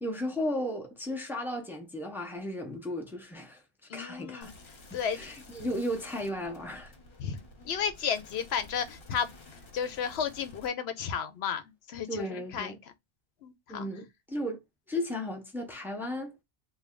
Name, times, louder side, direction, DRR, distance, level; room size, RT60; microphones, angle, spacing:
voice 1, 0.0-3.6 3.9-4.5 4.9-6.9 12.1-12.8 13.7-14.6 14.9-16.3, left 1 dB, ahead, 0.7 m, -35 dB
voice 2, 3.9-4.5 4.9-5.3 7.2-9.3 9.7-11.6 11.9-12.7 13.4-13.9, left 7 dB, 85° left, 0.9 m, -33 dB
sound 1, 4.4-10.7, left 2 dB, 65° left, 1.1 m, -52 dB
3.3 x 2.3 x 3.7 m
omnidirectional pair, 1.1 m